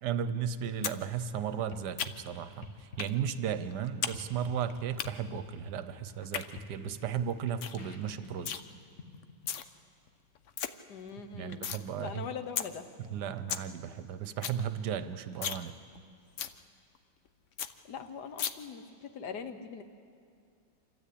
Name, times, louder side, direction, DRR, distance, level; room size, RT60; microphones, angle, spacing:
voice 1, 0.0-8.6 11.3-12.3 13.0-15.8, right 8 dB, 65° right, 12 dB, 1.3 m, -35 dB
sound 1, 0.6-9.5, left 3 dB, 35° left, 1.6 m, -50 dB
sound 2, 0.8-1.0 1.3-2.4 3.0-3.1 3.5-4.2 4.4-5.1 6.1-6.4 6.9-7.0 7.3-7.4 7.6-7.8 8.1-8.6 9.2-9.6 10.1-10.2 10.3-10.7 11.1-11.8 12.2-12.3 12.6-12.7 13.1-13.2 13.3-13.7 14.0-14.1 14.3-14.6 14.9-15.0 15.3-15.6 15.9-16.0 16.4-16.5 16.9-17.0 17.3-17.4 17.6-17.7 18.4-18.5, left 9 dB, 80° left, 0.6 m, -35 dB
voice 2, 10.9-11.7 12.0-12.9 17.9-19.8, left 6 dB, 60° left, 9 dB, 1.5 m, -41 dB
27.5 x 13.0 x 8.6 m, 2.4 s
omnidirectional pair, 2.2 m